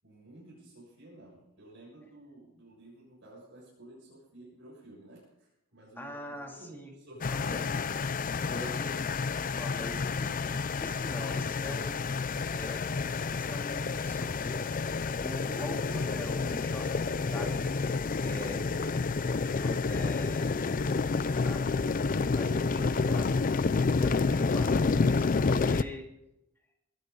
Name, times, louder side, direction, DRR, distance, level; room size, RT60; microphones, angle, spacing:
voice 1, 0.0-8.3 22.8-23.1, right 1 dB, 65° right, -5 dB, 7.0 m, -52 dB
voice 2, 6.0-6.9 7.3-7.6 8.4-10.5 10.8-12.0 12.5-12.9 13.3-14.7 15.2-18.6 19.3-20.6 21.1-21.7 22.1-22.8 23.1-23.3 24.0-26.0, left 1 dB, 10° left, 0 dB, 2.8 m, -43 dB
sound 1, 7.2-25.8, left 4 dB, 40° left, 0.5 m, -29 dB
23.0 x 12.5 x 3.9 m, 0.87 s
head